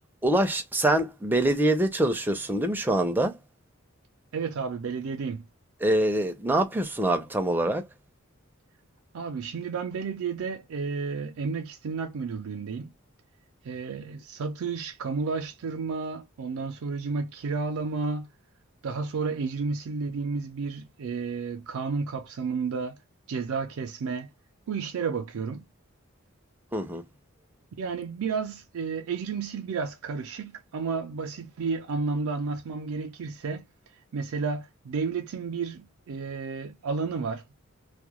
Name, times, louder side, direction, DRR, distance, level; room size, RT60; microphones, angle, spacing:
voice 1, 0.2-3.4 5.8-7.8 26.7-27.0, right 1 dB, 10° right, 0.4 m, -24 dB
voice 2, 4.3-5.5 9.1-12.9 13.6-18.3 18.8-23.0 23.3-24.3 24.7-25.6 27.8-33.7 34.1-37.4, right 4 dB, 85° right, 0.4 m, -32 dB
2.3 x 2.1 x 2.8 m
head